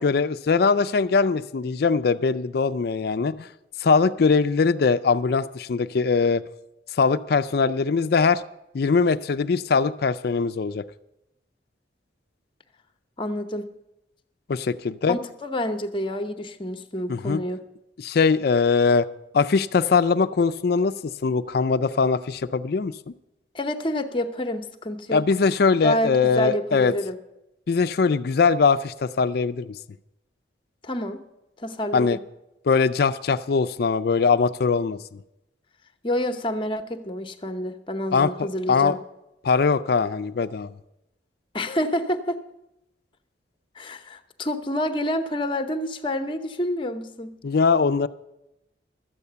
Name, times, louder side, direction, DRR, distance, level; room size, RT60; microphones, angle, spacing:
voice 1, 0.0-3.5 3.8-6.4 7.0-8.4 8.7-10.8 14.5-15.2 17.1-17.4 18.0-19.1 19.3-23.1 25.1-26.9 27.7-29.8 31.9-32.2 32.7-35.0 38.1-39.0 39.4-40.7 47.4-48.1, left 5 dB, 55° left, 12 dB, 0.4 m, -21 dB
voice 2, 13.2-13.7 15.0-17.6 23.5-25.3 25.8-27.2 30.8-31.2 31.6-32.2 36.0-39.0 41.5-42.4 43.8-47.4, left 1 dB, 25° left, 8 dB, 0.8 m, -28 dB
12.5 x 8.4 x 6.7 m, 0.90 s
head